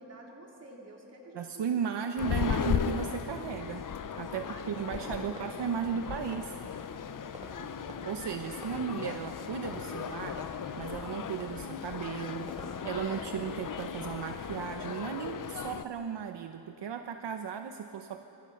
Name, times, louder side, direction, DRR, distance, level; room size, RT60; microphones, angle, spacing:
voice 1, 0.0-2.4 4.3-5.6 7.1-7.8 8.4-8.6, right 1 dB, 35° right, -2 dB, 3.9 m, -51 dB
voice 2, 1.3-3.9 4.2-6.6 8.1-10.5 10.8-18.2, right 7 dB, 70° right, 6 dB, 1.0 m, -35 dB
sound 1, 2.2-15.8, left 7 dB, 45° left, 0.7 m, -37 dB
Fireworks, 4.9-15.5, right 1 dB, 15° right, 2.3 m, -53 dB
sound 2, 8.0-14.8, equal, ahead, 2.1 m, -57 dB
26.0 x 25.0 x 5.9 m, 3.0 s
wide cardioid pair, 175°, 44 cm